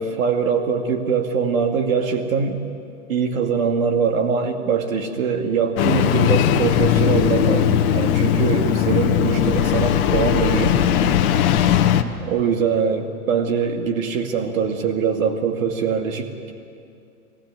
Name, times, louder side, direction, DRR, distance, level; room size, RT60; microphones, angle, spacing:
voice 1, 0.0-2.6 3.1-10.8 12.2-16.5, right 6 dB, 65° right, 4 dB, 2.6 m, -22 dB
Engine starting, 5.8-12.0, left 10 dB, 35° left, 1.2 m, -18 dB
20.5 x 15.0 x 9.7 m, 2.4 s
hypercardioid pair, 130°, 43 cm